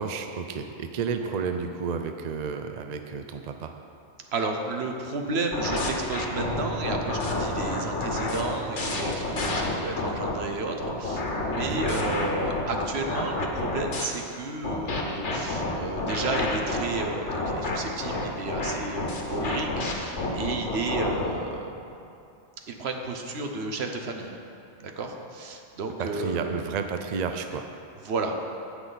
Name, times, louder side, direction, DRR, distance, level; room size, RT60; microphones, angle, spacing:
voice 1, 0.0-3.7 11.6-11.8 26.0-27.7, right 5 dB, 50° right, 6 dB, 0.5 m, -31 dB
voice 2, 1.0-1.4 4.3-21.8 22.7-24.3 24.8-26.6 28.0-28.3, right 3 dB, 70° right, 3 dB, 1.2 m, -32 dB
sound 1, 5.5-10.3 10.8-14.1 14.6-21.3, left 2 dB, 85° left, 1.5 m, -29 dB
sound 2, 6.4-14.8, right 4 dB, 85° right, 2.4 m, -46 dB
17.0 x 5.9 x 4.0 m, 2.7 s
omnidirectional pair, 1.2 m